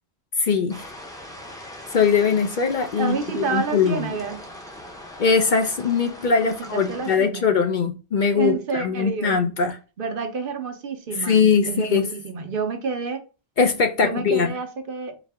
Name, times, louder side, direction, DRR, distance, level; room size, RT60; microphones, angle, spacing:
voice 1, 0.4-0.8 1.9-4.1 5.2-9.8 11.2-12.1 13.6-14.5, left 5 dB, 60° left, 0.6 m, -21 dB
sound 1, 0.7-7.2, left 1 dB, 5° left, 0.6 m, -41 dB
voice 2, 3.0-4.4 6.4-7.5 8.3-9.4 10.0-13.2 14.0-15.2, right 5 dB, 60° right, 0.8 m, -29 dB
4.1 x 2.8 x 3.4 m
omnidirectional pair, 1.1 m